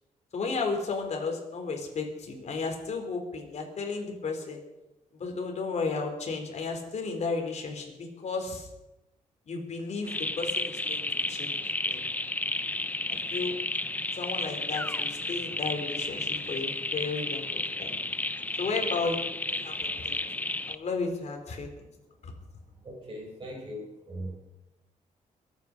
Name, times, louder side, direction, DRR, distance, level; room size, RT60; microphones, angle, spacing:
voice 1, 0.3-4.6 5.1-8.7 9.5-11.6 11.8-12.0 13.1-13.5 14.1-17.9 18.6-21.9 22.2-22.3, left 4 dB, 55° left, 3 dB, 3.7 m, -34 dB
sound 1, 10.1-20.8, left 2 dB, 10° left, 0.6 m, -32 dB
voice 2, 22.8-24.4, equal, 35° right, -4 dB, 4.3 m, -39 dB
22.5 x 9.3 x 5.2 m, 0.97 s
cardioid pair, 110°, 14 cm